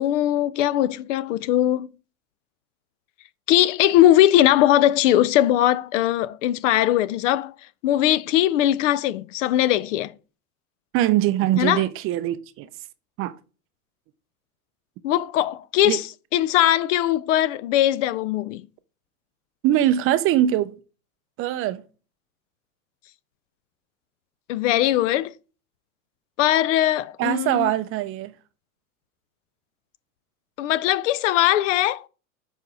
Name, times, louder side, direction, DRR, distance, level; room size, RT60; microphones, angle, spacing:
voice 1, 0.0-1.9 3.5-7.5 7.8-10.1 11.6-11.8 15.0-16.1 16.3-18.7 24.5-25.3 26.4-27.7 30.6-32.0, left 13 dB, 60° left, 0.5 m, -20 dB
voice 2, 10.9-12.7 13.2-13.3 15.8-16.0 19.6-20.7 21.4-21.8 27.2-28.3, right 13 dB, 30° right, 0.4 m, -22 dB
6.9 x 4.3 x 3.9 m
hypercardioid pair, 90°, 43 cm